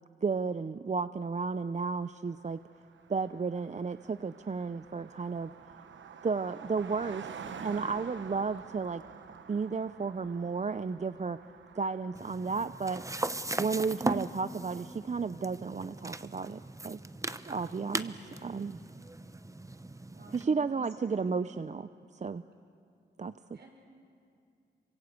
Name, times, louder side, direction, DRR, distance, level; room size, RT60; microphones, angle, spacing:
voice 1, 0.2-2.6 3.1-5.5 6.2-7.3 7.6-9.0 9.5-11.4 11.7-13.0 13.6-17.0 17.5-18.8 20.3-22.4 23.2-23.3, right 4 dB, 40° right, 12 dB, 0.6 m, -33 dB
Car passing by, 2.2-2.3 2.5-13.5, right 6 dB, 90° right, 1.1 m, -48 dB
sound 1, 12.1-20.4, right 2 dB, 15° right, 0.9 m, -38 dB
voice 2, 17.8-18.4 20.1-21.3 23.5-23.7, right 2 dB, 65° right, 1 dB, 6.5 m, -51 dB
27.0 x 25.0 x 8.4 m, 2.4 s
cardioid pair, 70°, 19 cm